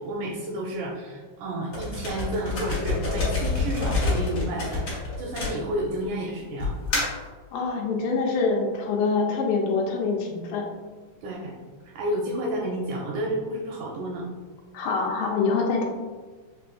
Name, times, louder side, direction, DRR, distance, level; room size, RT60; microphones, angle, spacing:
voice 1, 0.0-4.9 5.2-6.7 11.2-11.5 11.9-14.3, right 1 dB, 80° right, -2 dB, 1.8 m, -31 dB
sound 1, 1.7-6.0 6.6-7.3, left 3 dB, 50° left, 1.6 m, -27 dB
voice 2, 7.5-10.7 14.7-15.9, left 4 dB, 85° left, 0 dB, 2.2 m, -25 dB
5.6 x 2.5 x 2.3 m, 1.4 s
omnidirectional pair, 3.9 m